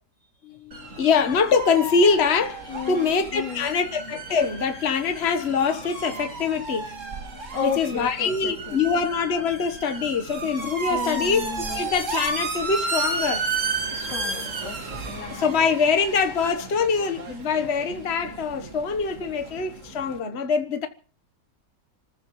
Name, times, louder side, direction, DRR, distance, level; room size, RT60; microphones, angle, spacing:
voice 1, 0.4-6.9 7.6-11.4 11.7-13.4 14.3-14.4 15.3-20.9, left 5 dB, 40° left, 1.4 m, -24 dB
sound 1, 0.7-20.2, right 3 dB, 45° right, 2.5 m, -33 dB
voice 2, 2.7-3.7 7.5-8.8 10.9-11.9 13.9-15.6, left 5 dB, 85° left, 3.7 m, -33 dB
28.5 x 15.0 x 3.2 m
omnidirectional pair, 1.8 m